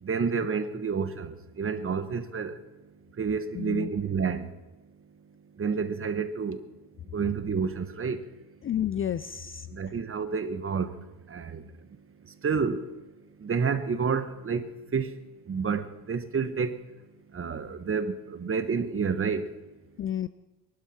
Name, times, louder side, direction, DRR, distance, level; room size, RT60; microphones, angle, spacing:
voice 1, 0.0-2.6 3.2-4.5 5.6-6.6 7.1-8.2 9.7-10.9 11.3-11.6 12.4-12.8 13.4-14.6 14.9-15.2 15.5-16.8 17.3-19.5, right 5 dB, 30° right, 1.3 m, -29 dB
voice 2, 3.5-3.9 8.6-9.7 20.0-20.3, left 10 dB, 30° left, 0.4 m, -30 dB
22.5 x 12.0 x 4.4 m
cardioid pair, 105°, 42 cm